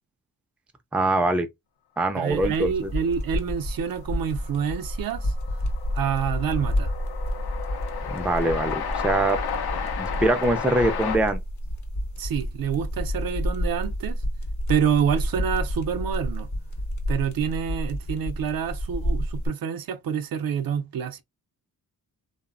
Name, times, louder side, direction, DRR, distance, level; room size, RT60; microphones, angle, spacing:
voice 1, 0.9-1.5 2.0-2.9 8.1-9.4 10.0-11.4, right 2 dB, 5° right, 0.4 m, -23 dB
voice 2, 2.1-5.3 5.9-6.9 12.2-14.2 14.7-16.5 17.1-21.2, right 7 dB, 65° right, 0.5 m, -27 dB
sound 1, 2.3-19.5, equal, 50° left, 0.8 m, -30 dB
Train, 3.7-3.8 4.0-11.2, left 7 dB, 75° left, 0.6 m, -33 dB
3.0 x 2.0 x 2.4 m
cardioid pair, 85°, 38 cm